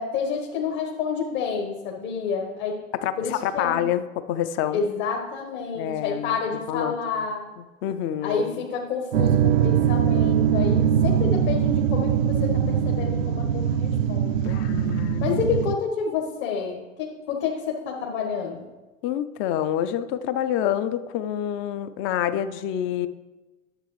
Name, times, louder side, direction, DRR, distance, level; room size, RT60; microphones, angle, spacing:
voice 1, 0.0-2.8 3.2-3.8 4.7-7.5 8.2-14.5 15.2-18.7, left 6 dB, 55° left, 1 dB, 1.4 m, -29 dB
voice 2, 3.0-4.8 5.7-6.4 6.7-7.3 7.8-8.6 14.4-15.4 19.0-23.1, left 10 dB, 30° left, 13 dB, 0.4 m, -27 dB
sound 1, 9.1-15.8, right 8 dB, 75° right, 0.5 m, -22 dB
11.5 x 7.0 x 3.2 m, 1.1 s
figure-of-eight pair, 90°, 40 cm